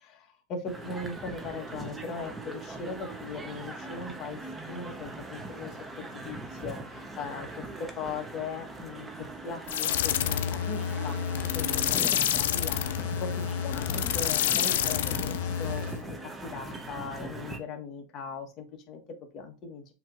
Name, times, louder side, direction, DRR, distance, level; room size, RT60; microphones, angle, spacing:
voice 1, 0.0-4.4 4.7-11.2 11.5-19.9, left 4 dB, 40° left, 4 dB, 1.2 m, -39 dB
sound 1, 0.7-17.6, right 2 dB, 10° right, 0.8 m, -40 dB
sound 2, 9.7-16.0, left 10 dB, 80° left, 0.4 m, -28 dB
7.3 x 2.9 x 2.5 m, 0.33 s
supercardioid pair, 130°, 0 cm